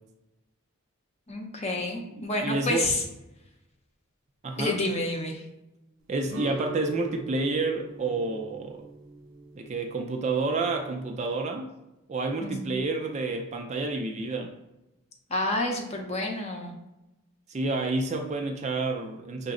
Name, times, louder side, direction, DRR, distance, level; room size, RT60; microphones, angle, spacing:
voice 1, 1.3-3.0 4.6-5.4 12.4-12.7 15.3-16.7, left 2 dB, 30° left, 2 dB, 0.6 m, -29 dB
voice 2, 2.1-2.9 4.4-4.7 6.1-8.9 9.5-11.7 12.1-14.5 17.5-19.5, right 3 dB, 30° right, 4 dB, 0.3 m, -29 dB
sound 1, 6.3-11.1, right 3 dB, 60° right, 0.7 m, -42 dB
5.8 x 2.0 x 3.6 m, 0.97 s
head